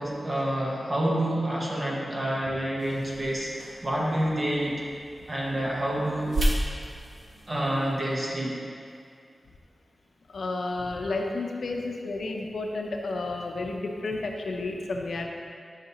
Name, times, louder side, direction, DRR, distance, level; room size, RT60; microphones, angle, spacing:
voice 1, 0.0-4.8 5.3-6.5 7.5-8.6, right 1 dB, 35° right, -4 dB, 1.2 m, -28 dB
sound 1, 2.8-8.1, right 1 dB, 65° right, 1.2 m, -34 dB
voice 2, 10.3-15.3, left 2 dB, 80° left, 1 dB, 0.8 m, -31 dB
11.5 x 5.9 x 3.0 m, 2.2 s
wide cardioid pair, 115°, 0 cm